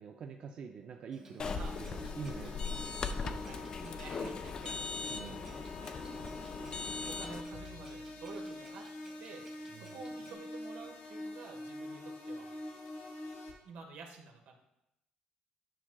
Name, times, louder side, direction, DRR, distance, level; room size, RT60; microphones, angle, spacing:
voice 1, 0.0-2.9 5.1-5.7 9.7-10.0, right 6 dB, 40° right, 3 dB, 0.4 m, -46 dB
Clock, 1.1-10.3, right 2 dB, 25° right, 1.3 m, -59 dB
sound 1, 1.4-7.4, left 4 dB, 30° left, 0.3 m, -39 dB
sound 2, 1.5-13.5, left 1 dB, 85° left, 1.5 m, -46 dB
voice 2, 3.1-4.9 5.4-6.4 7.0-8.9 9.2-12.6 13.6-14.5, right 4 dB, 75° right, 3 dB, 1.2 m, -50 dB
9.8 x 6.0 x 2.3 m, 0.86 s
cardioid pair, 170°, 3 cm